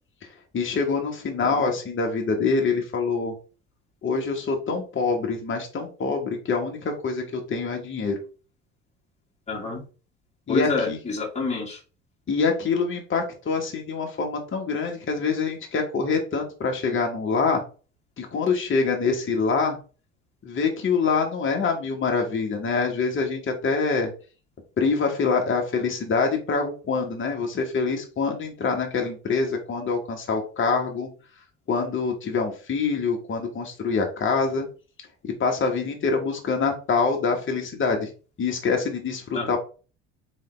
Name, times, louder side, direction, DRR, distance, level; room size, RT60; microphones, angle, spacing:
voice 1, 0.5-3.3 4.0-8.2 10.5-11.0 12.3-17.6 18.2-19.8 20.4-24.1 24.8-31.1 31.7-34.7 35.2-38.1 38.4-39.6, left 4 dB, 35° left, 2 dB, 1.5 m, -25 dB
voice 2, 9.5-9.8 10.5-11.8 39.3-39.6, left 4 dB, 20° left, -5 dB, 2.4 m, -28 dB
4.1 x 3.7 x 3.3 m, 0.36 s
hypercardioid pair, 65°, 35 cm